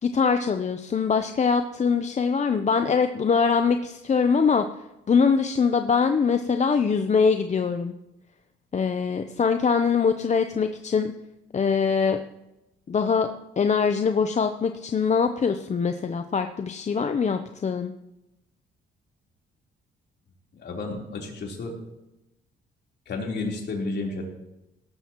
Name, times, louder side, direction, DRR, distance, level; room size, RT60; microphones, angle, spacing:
voice 1, 0.0-4.6 5.1-7.9 8.7-11.1 11.5-12.2 12.9-13.3 13.6-17.9, left 5 dB, 35° left, 7 dB, 0.7 m, -23 dB
voice 2, 20.6-21.7 23.1-24.2, left 3 dB, 60° left, -1 dB, 3.8 m, -31 dB
17.5 x 13.0 x 3.1 m, 0.92 s
cardioid pair, 90°, 20 cm